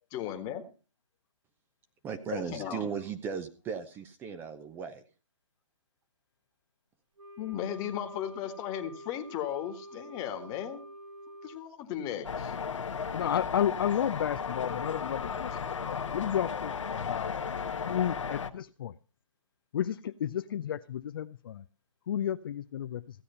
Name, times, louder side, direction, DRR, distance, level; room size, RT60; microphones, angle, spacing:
voice 1, 0.1-0.6 2.3-2.8 7.4-10.8 11.4-12.5, left 10 dB, 20° left, 1.5 m, -36 dB
voice 2, 2.0-5.0, right 6 dB, 10° right, 0.7 m, -37 dB
Wind instrument woodwind instrument, 7.2-11.6, equal, 65° right, 5.8 m, -47 dB
sound 1, 12.2-18.5, left 6 dB, 70° left, 1.2 m, -35 dB
voice 3, 13.1-15.5 15.9-17.3 17.8-18.9 19.7-21.6 22.1-23.0, left 10 dB, 45° left, 0.5 m, -32 dB
15.5 x 8.4 x 5.5 m
hypercardioid pair, 145°, 17 cm